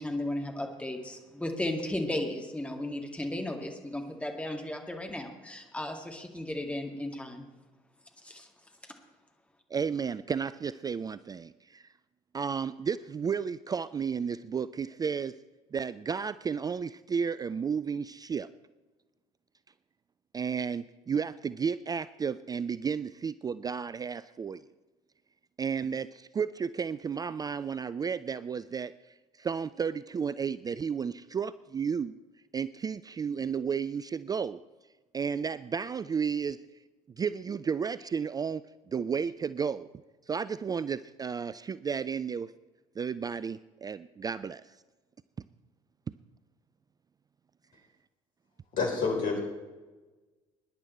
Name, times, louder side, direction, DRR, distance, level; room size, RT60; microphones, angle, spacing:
voice 1, 0.0-7.4 8.2-8.5, left 1 dB, 5° left, 3 dB, 2.1 m, -35 dB
voice 2, 9.7-11.9 12.3-15.4 15.7-18.5 20.3-24.6 25.6-32.1 32.5-34.6 35.1-36.6 37.2-39.9 40.3-42.5 43.0-44.8, right 6 dB, 20° right, 15 dB, 0.4 m, -33 dB
voice 3, 48.7-49.4, left 4 dB, 55° left, 2 dB, 4.0 m, -28 dB
21.5 x 11.0 x 4.3 m, 1.2 s
figure-of-eight pair, 55°, 17 cm